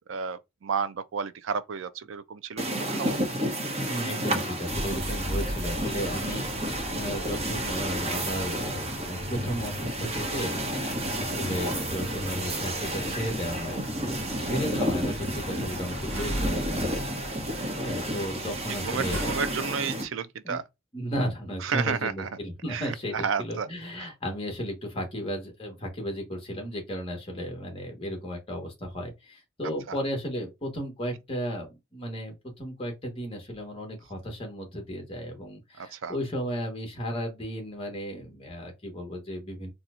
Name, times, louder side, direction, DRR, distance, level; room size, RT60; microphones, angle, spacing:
voice 1, 0.0-3.2 14.3-14.5 18.8-20.6 21.6-22.3 22.7-23.7 24.0-24.1 35.8-36.2, right 6 dB, 65° right, 0.4 m, -32 dB
sound 1, 2.6-20.0, right 1 dB, 30° right, 0.9 m, -31 dB
voice 2, 3.9-17.5 17.8-19.2 20.4-20.6 20.9-31.7 31.9-39.7, equal, 25° left, 1.3 m, -34 dB
sound 2, 4.6-19.8, equal, 85° right, 1.4 m, -37 dB
sound 3, 6.9-7.4 7.9-8.5 9.0-9.5 10.0-10.5 11.6-13.3, right 4 dB, 45° left, 0.8 m, -45 dB
4.2 x 2.3 x 2.5 m
head